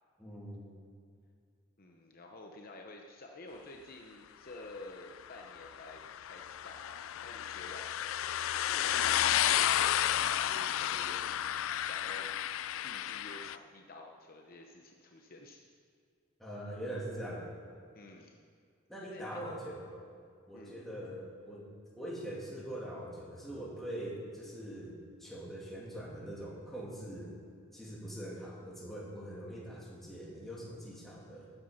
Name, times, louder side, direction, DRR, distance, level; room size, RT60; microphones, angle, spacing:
voice 1, 0.2-0.7 16.4-17.5 18.9-19.9 20.5-21.7 22.0-27.3 27.7-31.5, right 1 dB, ahead, -6 dB, 2.5 m, -43 dB
voice 2, 1.8-15.6 17.9-18.4 19.0-19.5 20.5-20.8, left 2 dB, 45° left, 1 dB, 0.8 m, -51 dB
sound 1, 5.4-13.6, left 11 dB, 70° left, 0.3 m, -32 dB
13.0 x 8.0 x 5.6 m, 2.3 s
head